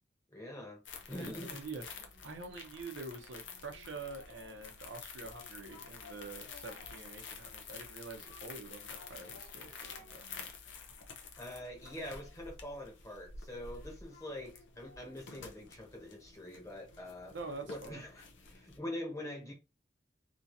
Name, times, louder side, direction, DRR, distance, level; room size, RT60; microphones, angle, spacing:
voice 1, 0.3-1.6 11.4-17.4 17.6-19.5, left 1 dB, 15° left, 1.0 m, -44 dB
sound 1, 0.8-18.8, left 5 dB, 90° left, 0.7 m, -50 dB
voice 2, 1.1-10.5 17.3-18.0, right 3 dB, 85° right, 0.8 m, -46 dB
3.0 x 2.7 x 2.6 m
head